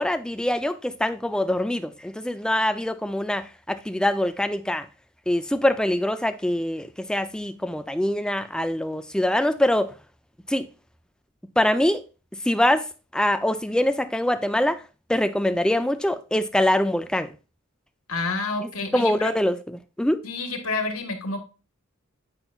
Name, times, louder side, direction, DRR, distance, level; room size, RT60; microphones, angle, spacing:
voice 1, 0.0-4.9 5.3-9.9 10.5-10.7 11.6-12.0 12.4-12.9 13.1-14.8 15.1-17.3 18.6-19.6 20.0-20.2, left 1 dB, 5° left, 0.4 m, -24 dB
voice 2, 18.1-19.3 20.2-21.4, left 3 dB, 80° left, 1.6 m, -29 dB
8.8 x 5.5 x 2.4 m
head